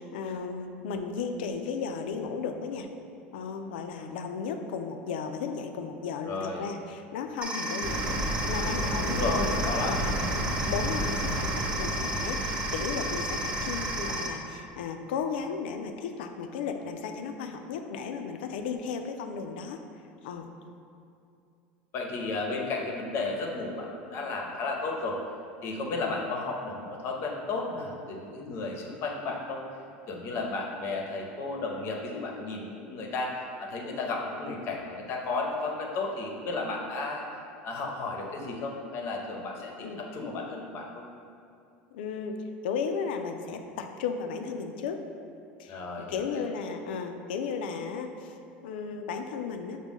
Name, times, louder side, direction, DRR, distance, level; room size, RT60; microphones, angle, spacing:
voice 1, 0.1-2.9 3.3-8.2 8.5-9.9 10.7-19.8 20.2-20.5 39.8-40.0 41.9-42.4 42.6-45.0 45.6-45.8 46.1-48.4 48.6-49.8, left 5 dB, 85° left, 6 dB, 0.3 m, -35 dB
voice 2, 6.3-6.6 9.0-10.1 21.9-25.2 25.6-29.6 30.1-33.3 33.6-37.2 37.6-41.0 45.7-46.4, left 3 dB, 50° left, 0 dB, 0.7 m, -33 dB
sound 1, 7.4-14.3, right 1 dB, 25° right, 0.9 m, -33 dB
sound 2, 7.8-14.1, equal, 50° right, 0.8 m, -32 dB
5.9 x 2.1 x 3.5 m, 2.5 s
supercardioid pair, 105°, 5 cm